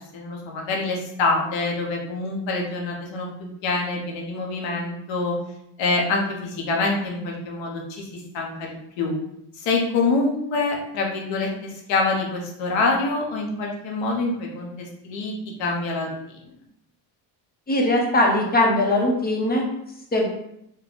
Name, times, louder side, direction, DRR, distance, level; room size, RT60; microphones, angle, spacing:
voice 1, 0.0-3.3 3.6-5.4 5.8-9.1 9.6-15.3 15.6-16.2, left 3 dB, 90° left, -1 dB, 1.1 m, -26 dB
voice 2, 17.7-19.7 20.1-20.3, left 1 dB, 20° left, -1 dB, 0.9 m, -20 dB
4.2 x 2.3 x 3.9 m, 0.77 s
cardioid pair, 140°, 44 cm